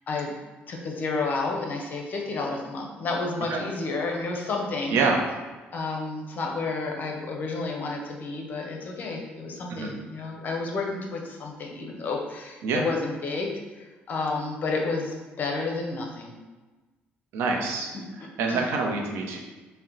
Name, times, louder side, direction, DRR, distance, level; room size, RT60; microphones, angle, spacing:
voice 1, 0.7-5.1 5.7-16.3 17.9-18.7, left 3 dB, 50° left, 1 dB, 0.7 m, -31 dB
voice 2, 4.9-5.2 9.7-9.9 12.6-12.8 17.3-17.9 18.4-19.4, right 4 dB, 85° right, 1 dB, 0.7 m, -26 dB
4.1 x 2.2 x 3.8 m, 1.2 s
cardioid pair, 100°, 4 cm